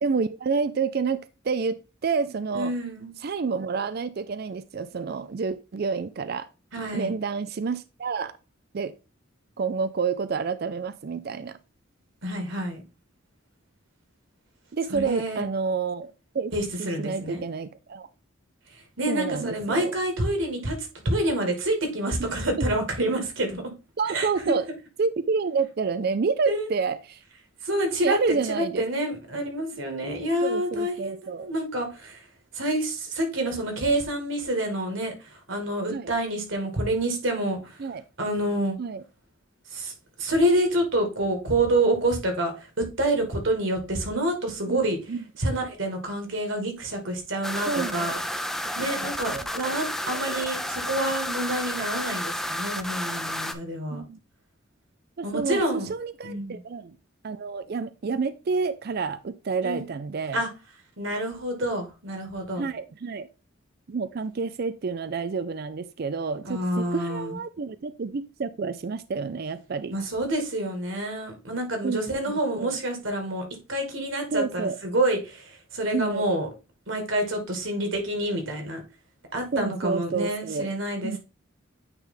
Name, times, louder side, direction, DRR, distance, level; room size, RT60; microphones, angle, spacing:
voice 1, 0.0-2.7 3.2-6.5 6.9-8.3 8.7-8.9 9.6-11.6 14.7-16.5 16.8-18.1 19.1-20.0 22.6-22.7 24.0-24.7 25.0-27.2 28.0-28.8 30.4-31.5 35.9-36.1 37.8-38.0 38.8-39.0 44.7-45.2 47.7-48.2 48.6-49.5 53.9-54.2 55.2-57.0 57.2-60.4 62.6-63.3 63.9-69.9 71.8-72.8 74.3-74.8 75.9-76.2 79.5-80.7 81.0-81.2, right 5 dB, 50° right, 0.4 m, -29 dB
voice 2, 2.5-3.1 6.7-7.1 12.2-12.8 14.9-15.4 16.5-17.4 19.0-23.6 24.1-24.5 26.5-26.7 27.6-28.2 28.5-32.2 32.5-37.8 38.2-38.8 39.7-39.9 40.2-45.0 45.4-48.2 48.8-54.0 55.2-55.9 56.2-56.6 59.6-59.9 60.3-60.5 61.0-62.7 66.5-67.4 69.9-76.5 76.9-78.8 79.3-81.2, right 1 dB, 70° right, 2.4 m, -27 dB
sound 1, 47.4-53.5, left 1 dB, ahead, 0.5 m, -31 dB
9.0 x 3.4 x 3.8 m
head